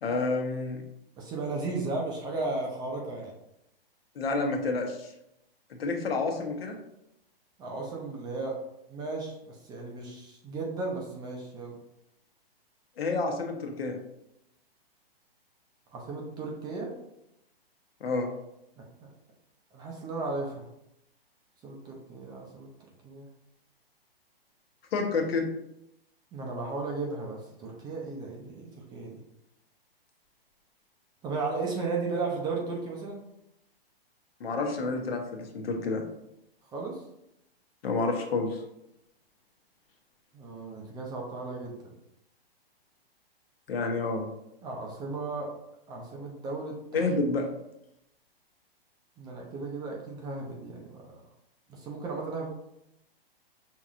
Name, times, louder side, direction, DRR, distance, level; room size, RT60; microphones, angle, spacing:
voice 1, 0.0-0.8 4.1-5.1 5.7-6.8 13.0-14.0 18.0-18.3 24.9-25.5 34.4-36.0 37.8-38.6 43.7-44.3 46.9-47.5, left 3 dB, 75° left, 3 dB, 1.0 m, -29 dB
voice 2, 1.2-3.3 7.6-8.6 8.9-11.8 15.9-16.9 18.8-19.1 19.7-20.7 21.6-22.7 23.0-23.3 26.3-29.2 31.2-33.3 36.7-37.0 40.3-41.8 44.6-45.5 45.9-47.1 49.2-51.0 51.7-52.5, right 3 dB, 15° right, -1 dB, 0.5 m, -35 dB
5.5 x 3.0 x 2.4 m, 0.83 s
hypercardioid pair, 135°, 30 cm